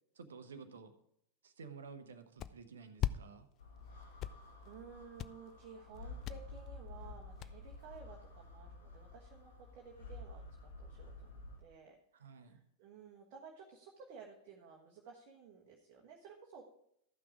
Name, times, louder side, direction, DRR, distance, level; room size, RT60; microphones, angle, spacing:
voice 1, 0.1-0.9 1.4-3.4 12.1-12.6, right 5 dB, 65° right, 9 dB, 1.0 m, -52 dB
sound 1, 2.4-2.5 3.0-3.1 3.5-3.8 4.0-4.9 5.2-5.5 5.9-6.4 6.7-6.8 7.0-7.1 7.4-8.0, left 12 dB, 35° left, 0.4 m, -37 dB
sound 2, 3.6-11.6, left 2 dB, 65° left, 1.6 m, -51 dB
voice 2, 3.8-10.4 10.8-16.7, right 5 dB, 45° right, -1 dB, 1.3 m, -55 dB
13.5 x 6.1 x 4.9 m, 0.74 s
figure-of-eight pair, 90°, 0 cm